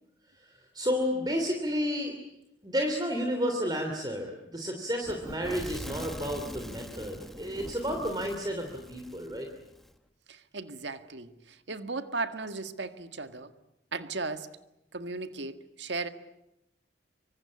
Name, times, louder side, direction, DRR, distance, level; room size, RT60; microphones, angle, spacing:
voice 1, 0.4-2.1 2.6-9.5, equal, 20° right, 3 dB, 2.8 m, -31 dB
Fire / Explosion, 5.0-9.9, equal, ahead, 1.3 m, -43 dB
voice 2, 10.3-13.5 13.9-14.5 14.9-16.1, right 3 dB, 75° right, 9 dB, 1.8 m, -36 dB
25.5 x 25.0 x 8.6 m, 0.86 s
head